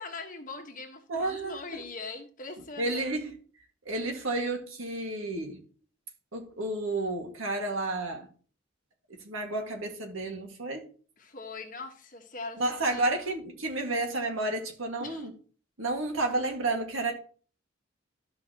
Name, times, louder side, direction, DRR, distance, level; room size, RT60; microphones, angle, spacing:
voice 1, 0.0-3.1 11.2-13.1 15.0-15.3, left 3 dB, 40° left, 1.3 m, -41 dB
voice 2, 1.1-1.8 2.8-3.3 3.9-5.6 6.3-8.3 9.1-10.9 12.6-15.3 15.8-17.1, right 2 dB, 85° right, 1.9 m, -31 dB
13.0 x 5.7 x 2.9 m
head